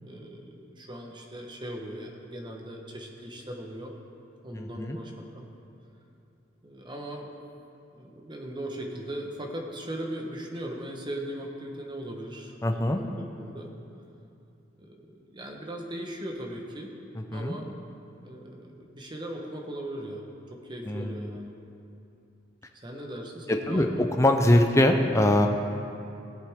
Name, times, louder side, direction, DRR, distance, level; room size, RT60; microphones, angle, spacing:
voice 1, 0.0-3.9 4.4-5.5 6.6-7.4 7.9-13.7 14.8-16.9 17.3-17.8 18.2-21.5 22.8-24.0, right 1 dB, 20° right, 1 dB, 1.1 m, -39 dB
voice 2, 4.5-5.0 12.6-13.0 17.3-17.6 20.9-21.4 23.5-25.5, left 1 dB, 15° left, 4 dB, 0.5 m, -23 dB
17.5 x 7.6 x 3.6 m, 2.8 s
head